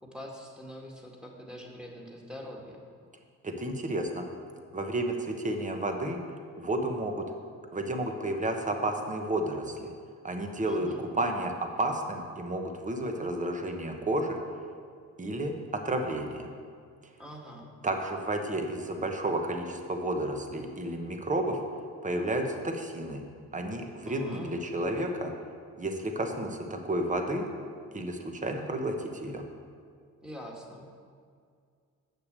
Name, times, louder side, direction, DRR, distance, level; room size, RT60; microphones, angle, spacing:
voice 1, 0.0-2.8 10.6-11.0 17.2-17.7 24.1-24.5 30.2-30.8, equal, ahead, -1 dB, 1.9 m, -44 dB
voice 2, 3.4-4.2 4.7-6.2 6.6-7.3 7.7-9.9 10.2-11.5 11.8-14.4 15.2-15.5 15.8-16.5 17.8-21.6 22.0-23.2 23.5-25.3 25.8-27.4 27.9-29.4, right 1 dB, 25° right, 4 dB, 1.2 m, -31 dB
8.1 x 6.8 x 6.8 m, 2.2 s
cardioid pair, 90°, 30 cm